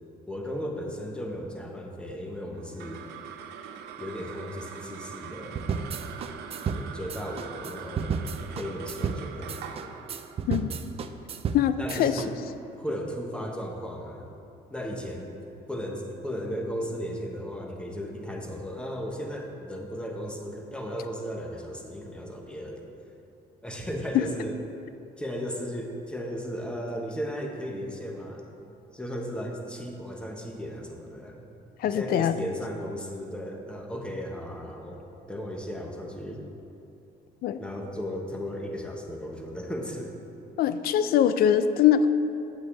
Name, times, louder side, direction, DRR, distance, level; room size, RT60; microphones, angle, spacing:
voice 1, 0.3-3.0 4.0-5.6 6.8-8.2 8.5-9.9 11.8-12.4 12.7-14.3 14.7-15.3 15.7-22.9 23.6-24.6 25.2-28.5 28.9-31.5 31.8-36.4 37.6-40.1, equal, 5° left, 1 dB, 1.0 m, -35 dB
sound 1, 2.5-13.1, right 7 dB, 85° right, 0.6 m, -43 dB
sound 2, 5.6-12.3, right 6 dB, 35° right, 0.4 m, -32 dB
voice 2, 11.5-12.2 24.1-24.2 31.8-32.4 37.4-37.6 40.6-42.1, left 9 dB, 65° left, 12 dB, 0.4 m, -22 dB
8.3 x 8.3 x 3.2 m, 2.8 s
cardioid pair, 110°, 17 cm